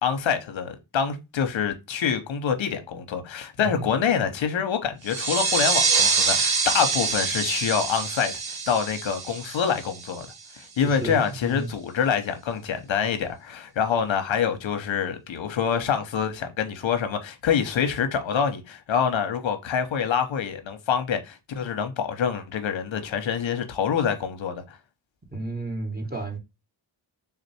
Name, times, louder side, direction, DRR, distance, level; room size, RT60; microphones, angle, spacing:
voice 1, 0.0-8.3 8.7-10.3 10.8-24.8, left 7 dB, 65° left, 0.9 m, -26 dB
sound 1, 5.1-10.4, right 5 dB, 50° right, 1.0 m, -25 dB
voice 2, 10.8-11.7 25.3-26.4, right 2 dB, 20° right, 1.4 m, -32 dB
3.6 x 2.5 x 4.1 m
cardioid pair, 45°, 49 cm